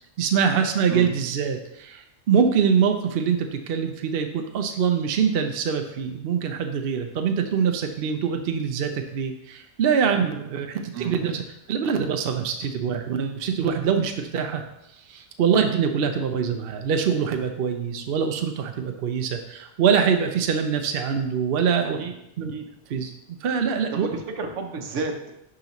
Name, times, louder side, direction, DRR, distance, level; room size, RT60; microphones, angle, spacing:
voice 1, 0.2-11.4 11.7-14.6 15.1-22.0 22.4-22.5 22.9-24.1, right 7 dB, 60° right, 5 dB, 0.8 m, -24 dB
voice 2, 23.9-25.3, right 4 dB, 80° right, 4 dB, 1.2 m, -31 dB
10.5 x 3.9 x 3.0 m, 0.84 s
omnidirectional pair, 1.3 m